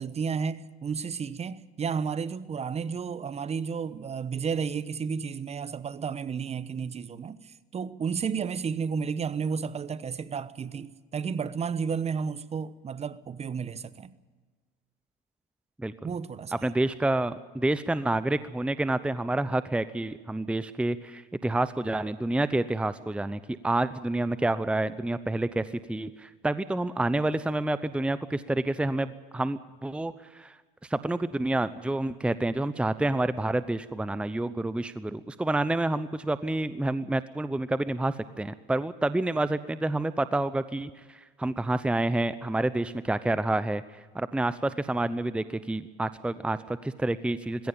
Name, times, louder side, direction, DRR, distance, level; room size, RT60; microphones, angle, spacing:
voice 1, 0.0-14.1 16.0-16.7, right 6 dB, 30° right, 1.0 m, -32 dB
voice 2, 15.8-16.1 16.6-30.6 30.8-47.7, right 2 dB, 5° right, 0.8 m, -28 dB
20.0 x 16.5 x 9.0 m
supercardioid pair, 100°, 21 cm